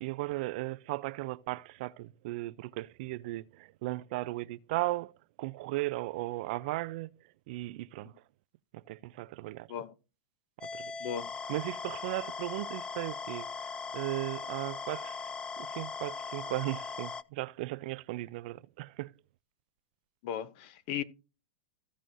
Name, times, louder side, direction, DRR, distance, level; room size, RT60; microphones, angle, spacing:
voice 1, 0.0-7.1 7.5-8.1 8.7-9.7 10.7-10.9 11.5-19.1, right 19 dB, 60° right, 0.4 m, -36 dB
sound 1, 10.6-17.2, left 5 dB, 15° left, 0.3 m, -39 dB
voice 2, 20.2-21.0, left 9 dB, 55° left, 0.8 m, -36 dB
15.5 x 6.2 x 2.6 m
hypercardioid pair, 125°, 6 cm